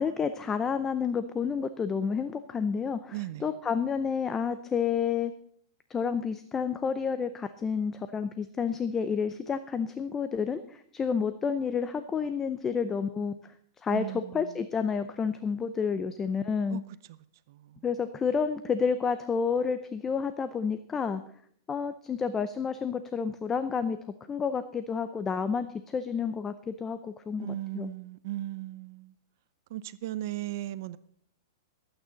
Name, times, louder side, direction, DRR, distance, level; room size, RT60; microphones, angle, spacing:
voice 1, 0.0-3.1 3.4-5.3 5.9-13.3 13.8-16.8 17.8-21.2 21.7-24.0 24.3-27.9, left 6 dB, 15° left, 0.6 m, -30 dB
voice 2, 3.1-3.5 13.9-14.6 16.7-16.8 17.1-17.2 17.5-17.9 27.4-29.1 29.7-31.0, right 15 dB, 55° right, 0.6 m, -37 dB
23.5 x 9.0 x 4.0 m
hypercardioid pair, 150°, 2 cm